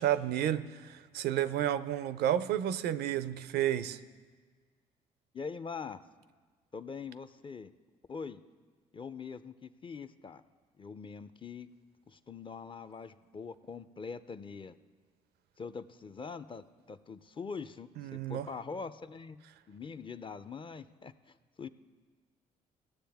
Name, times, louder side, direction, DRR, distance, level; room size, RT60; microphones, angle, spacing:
voice 1, 0.0-4.0 18.0-18.5, right 11 dB, 75° right, 14 dB, 0.5 m, -31 dB
voice 2, 5.3-6.0 6.7-7.7 8.1-8.4 8.9-10.4 10.8-11.7 12.1-14.8 15.6-21.7, left 5 dB, 30° left, 13 dB, 0.5 m, -43 dB
17.0 x 7.2 x 3.5 m, 1.5 s
supercardioid pair, 55°, 17 cm